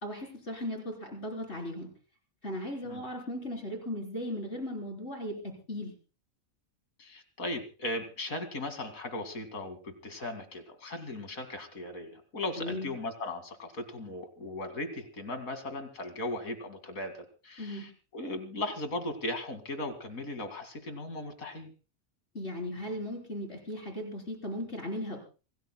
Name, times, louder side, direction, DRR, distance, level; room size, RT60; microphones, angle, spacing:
voice 1, 0.0-1.9 2.4-5.9 12.6-12.9 17.6-17.9 22.3-25.2, left 1 dB, 50° left, 1 dB, 4.3 m, -37 dB
voice 2, 7.0-21.7, left 1 dB, 90° left, 8 dB, 2.7 m, -37 dB
26.0 x 18.0 x 2.2 m, 0.34 s
omnidirectional pair, 1.4 m